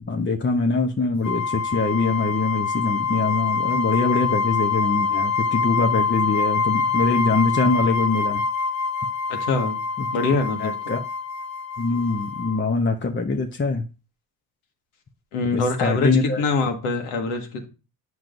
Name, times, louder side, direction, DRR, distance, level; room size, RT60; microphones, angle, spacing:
voice 1, 0.1-8.4 10.0-10.1 10.6-11.0 11.8-13.8 15.5-16.4, left 3 dB, 25° left, 1.0 m, -23 dB
sound 1, 1.2-12.7, left 5 dB, 45° left, 1.1 m, -25 dB
voice 2, 9.3-9.8 10.1-10.9 15.3-17.7, left 3 dB, 85° left, 1.8 m, -24 dB
8.9 x 6.3 x 2.6 m
supercardioid pair, 75°, 48 cm